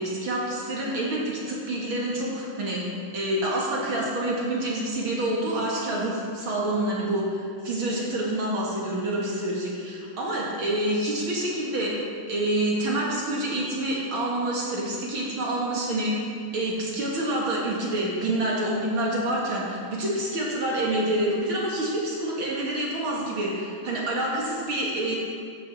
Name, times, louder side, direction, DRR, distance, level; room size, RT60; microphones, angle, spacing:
voice 1, 0.0-2.9 3.1-12.0 12.3-25.1, right 1 dB, 45° right, -4 dB, 2.0 m, -27 dB
15.5 x 8.6 x 4.2 m, 2.3 s
omnidirectional pair, 4.2 m